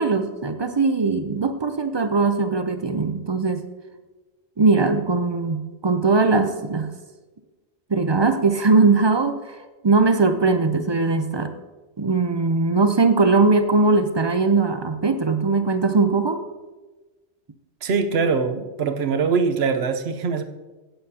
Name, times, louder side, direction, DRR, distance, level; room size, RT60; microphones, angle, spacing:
voice 1, 0.0-3.7 4.6-6.9 7.9-9.6 9.8-11.5 12.0-16.4, right 3 dB, 40° right, 9 dB, 0.4 m, -20 dB
voice 2, 17.8-20.4, right 5 dB, 70° right, 8 dB, 1.0 m, -22 dB
16.5 x 7.8 x 2.8 m, 1.2 s
omnidirectional pair, 1.1 m